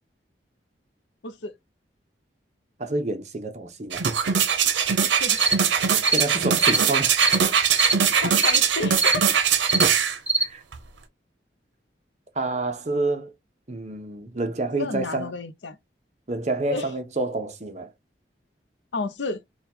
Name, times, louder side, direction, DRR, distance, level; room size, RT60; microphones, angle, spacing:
voice 1, 2.8-4.1 6.1-7.1 10.4-10.6 12.4-13.3 13.7-15.3 16.3-17.9, right 2 dB, 40° right, 0.7 m, -28 dB
sound 1, 3.9-10.2 10.7-10.8, right 7 dB, 90° right, 0.7 m, -21 dB
voice 2, 5.0-5.4 8.2-9.3 14.8-15.8 16.7-16.9 18.9-19.4, left 3 dB, 85° left, 0.6 m, -31 dB
sound 2, 5.4-5.6 6.0-6.3 6.6-6.8 7.2-7.4 7.7-8.0 8.4-8.6 9.0-9.2 9.6-9.9 10.3-10.5, right 2 dB, 10° right, 0.4 m, -22 dB
3.5 x 2.3 x 4.3 m
head